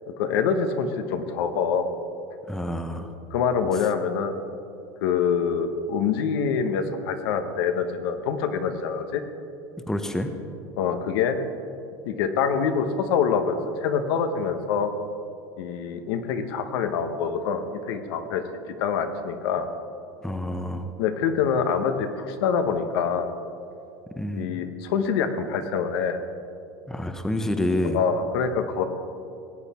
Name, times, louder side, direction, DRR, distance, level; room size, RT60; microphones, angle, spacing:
voice 1, 0.2-1.9 3.3-4.4 5.0-9.2 10.8-11.4 12.0-14.9 15.6-19.7 21.0-23.3 24.3-26.2 27.8-28.8, left 6 dB, 80° left, 7 dB, 1.1 m, -25 dB
voice 2, 2.5-3.1 9.9-10.3 20.2-20.9 24.1-24.7 26.9-28.0, left 1 dB, 5° left, 7 dB, 0.7 m, -28 dB
18.5 x 8.2 x 4.3 m, 2.6 s
supercardioid pair, 130°, 12 cm